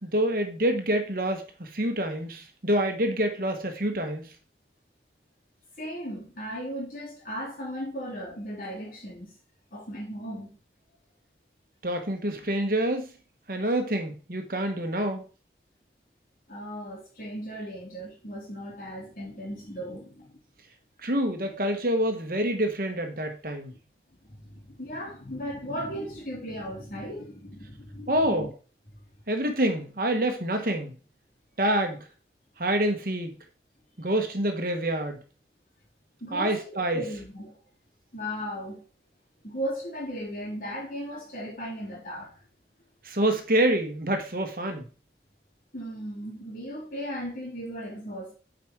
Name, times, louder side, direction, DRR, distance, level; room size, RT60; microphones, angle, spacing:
voice 1, 0.0-4.3 11.8-13.1 13.5-15.2 21.0-23.7 28.1-28.5 29.3-30.9 31.6-32.1 32.6-33.4 34.0-35.2 36.3-37.0 43.0-44.9, right 1 dB, 55° right, 1.3 m, -27 dB
voice 2, 5.8-9.3 9.7-10.5 16.5-20.4 24.2-28.5 36.2-37.6 38.1-38.8 39.4-42.3 45.7-48.4, equal, 50° left, 3.5 m, -36 dB
8.4 x 5.1 x 4.7 m
head